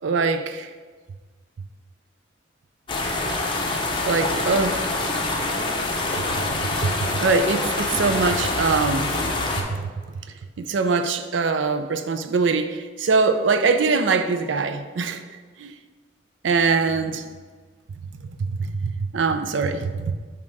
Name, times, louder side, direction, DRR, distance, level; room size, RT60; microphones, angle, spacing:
voice 1, 0.0-0.7 4.0-4.9 6.3-6.4 6.8-9.2 9.7-9.9 10.6-15.2 15.6-15.7 16.4-17.3 18.5-20.2, right 4 dB, 85° right, 9 dB, 0.4 m, -23 dB
sound 1, 2.9-9.6, left 2 dB, 25° left, 0.7 m, -25 dB
7.2 x 2.9 x 4.7 m, 1.4 s
head